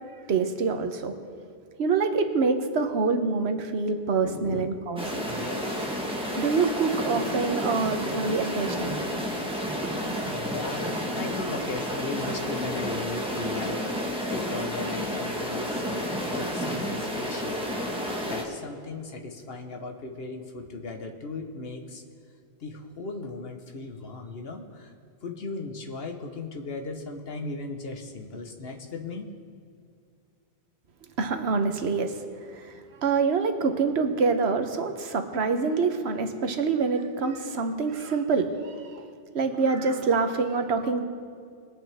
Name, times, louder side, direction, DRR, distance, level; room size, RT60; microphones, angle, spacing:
voice 1, 0.3-1.1 1.8-5.4 6.4-9.0 9.8-9.9 31.2-32.2 32.5-32.7 33.0-39.1 39.3-41.0, right 4 dB, 75° right, 6 dB, 1.2 m, -26 dB
voice 2, 4.2-4.8 5.3-6.2 10.1-13.8 14.3-17.6 18.3-22.0 22.6-24.9 25.2-29.3, left 3 dB, 65° left, 3 dB, 1.3 m, -37 dB
sound 1, 5.0-18.4, equal, 5° right, 1.3 m, -31 dB
21.0 x 8.4 x 3.5 m, 2.2 s
omnidirectional pair, 1.1 m